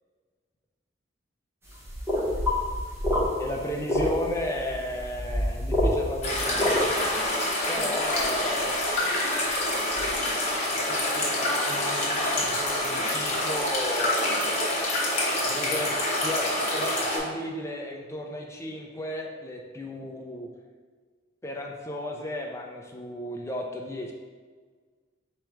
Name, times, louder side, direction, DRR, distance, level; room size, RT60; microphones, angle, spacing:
sound 1, 1.7-6.8, left 1 dB, 10° right, 0.7 m, -27 dB
voice 1, 3.4-7.1 7.7-8.7 10.7-14.5 15.4-16.0 16.2-20.5 21.4-24.1, equal, 15° left, 0 dB, 0.4 m, -34 dB
sound 2, 6.2-17.2, left 1 dB, 35° left, 0.9 m, -27 dB
3.6 x 3.1 x 4.5 m, 1.5 s
head